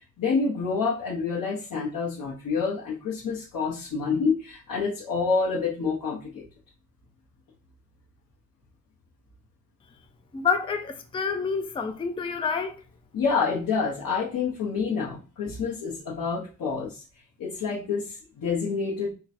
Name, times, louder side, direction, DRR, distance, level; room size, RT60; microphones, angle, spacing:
voice 1, 0.2-6.5 13.1-17.0 17.4-19.1, left 5 dB, 75° left, 1.1 m, -28 dB
voice 2, 10.3-12.8, left 5 dB, 15° left, 0.3 m, -28 dB
3.8 x 2.3 x 4.2 m
wide cardioid pair, 170°, 34 cm